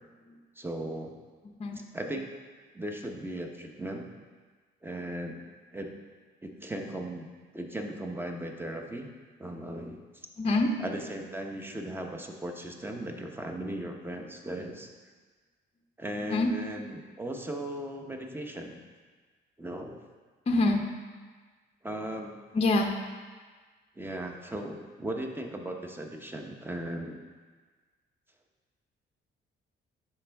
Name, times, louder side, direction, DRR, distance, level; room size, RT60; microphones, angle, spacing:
voice 1, 0.6-1.1 1.9-2.3 2.7-4.1 4.8-5.4 5.7-6.0 6.4-7.3 7.5-9.1 9.4-10.0 10.8-14.9 16.0-18.8 19.6-20.0 21.8-22.4 24.0-27.2, right 1 dB, 10° right, 3 dB, 0.9 m, -37 dB
voice 2, 10.4-10.7 16.2-16.5 20.5-20.9 22.5-22.9, left 2 dB, 30° left, 4 dB, 0.7 m, -25 dB
11.5 x 4.5 x 3.5 m, 1.5 s
cardioid pair, 90°, 20 cm